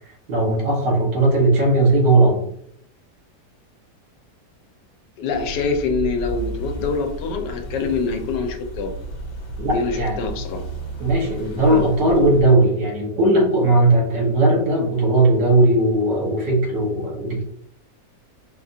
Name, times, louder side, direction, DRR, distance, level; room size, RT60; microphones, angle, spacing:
voice 1, 0.3-2.5 9.6-10.2 11.0-17.4, right 2 dB, 80° right, -1 dB, 1.7 m, -18 dB
voice 2, 5.2-8.9 9.6-10.6 11.6-11.8, left 4 dB, 80° left, 5 dB, 1.3 m, -25 dB
sound 1, 5.3-12.4, equal, 60° left, 1.3 m, -33 dB
4.9 x 2.4 x 2.7 m, 0.69 s
omnidirectional pair, 1.8 m